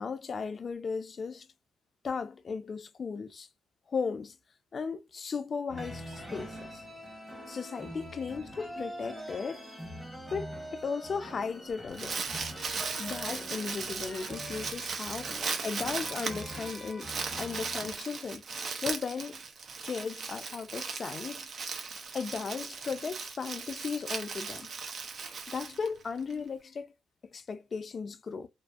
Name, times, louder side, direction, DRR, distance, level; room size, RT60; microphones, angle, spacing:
voice 1, 0.0-1.5 2.0-3.5 3.9-4.4 4.7-6.8 7.5-9.7 10.3-12.2 13.0-17.1 17.4-18.4 18.8-19.4 19.8-21.5 22.1-24.7 25.5-26.9 27.3-28.5, left 5 dB, 40° left, 0.4 m, -36 dB
sound 1, 5.7-18.0, equal, 5° right, 0.9 m, -44 dB
Crumpling crinkling, 11.7-26.3, right 5 dB, 50° right, 0.5 m, -37 dB
2.6 x 2.5 x 2.3 m
cardioid pair, 90°, 0 cm